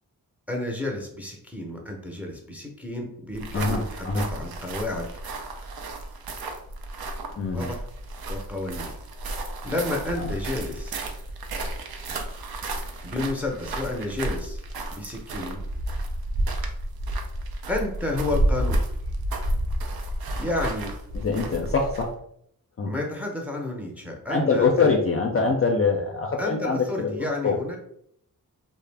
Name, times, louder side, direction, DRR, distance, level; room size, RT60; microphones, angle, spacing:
voice 1, 0.5-5.1 7.5-7.8 8.3-8.9 9.3-11.0 13.0-14.6 14.9-15.6 17.7-18.9 20.4-20.9 22.8-25.0 26.4-27.9, left 2 dB, 5° right, 1 dB, 0.6 m, -31 dB
sound 1, 3.3-22.2, right 1 dB, 85° right, 0.5 m, -31 dB
voice 2, 3.5-4.3 7.4-7.7 10.2-10.3 21.1-22.1 22.8-22.9 24.3-27.6, left 4 dB, 40° left, 1 dB, 0.4 m, -24 dB
2.4 x 2.0 x 3.3 m, 0.70 s
wide cardioid pair, 70°, 36 cm